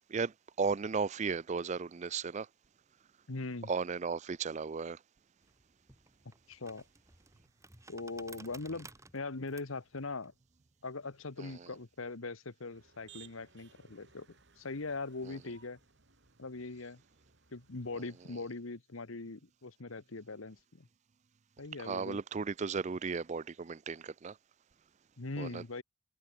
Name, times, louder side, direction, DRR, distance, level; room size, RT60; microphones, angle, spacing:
voice 1, 0.6-2.5 3.7-5.0 21.8-24.3 25.4-25.6, right 5 dB, 35° right, 0.4 m, -35 dB
voice 2, 3.3-3.7 6.5-6.8 7.9-8.9 9.1-10.3 10.8-14.3 14.6-15.8 16.4-17.0 17.5-20.9 21.6-22.2 25.2-25.8, left 3 dB, 75° left, 1.3 m, -41 dB
sound 1, 5.4-12.1, right 3 dB, 15° right, 2.4 m, -57 dB
Motor vehicle (road), 12.7-18.3, right 7 dB, 55° right, 6.3 m, -62 dB
head